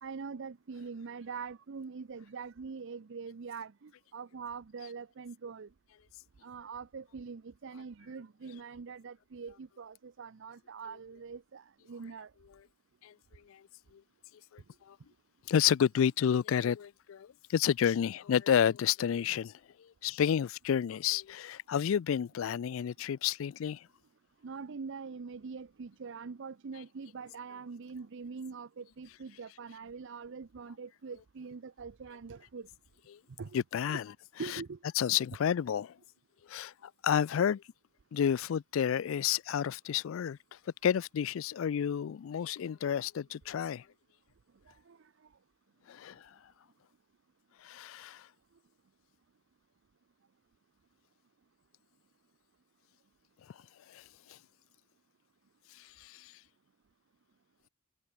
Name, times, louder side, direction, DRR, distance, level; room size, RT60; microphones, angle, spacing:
voice 1, 0.0-5.7 6.4-12.3 24.4-32.7 33.4-33.6 33.9-34.0 34.4-34.8 44.7-45.1, right 5 dB, 60° right, 0.5 m, -43 dB
voice 2, 15.5-19.5 20.0-23.8 33.1-33.2 33.5-34.0 35.0-35.9 36.5-37.6 38.1-40.4 40.8-43.8 45.9-46.2 47.6-48.2 53.9-54.0 54.3-54.4 56.0-56.3, left 8 dB, 65° left, 0.3 m, -30 dB
head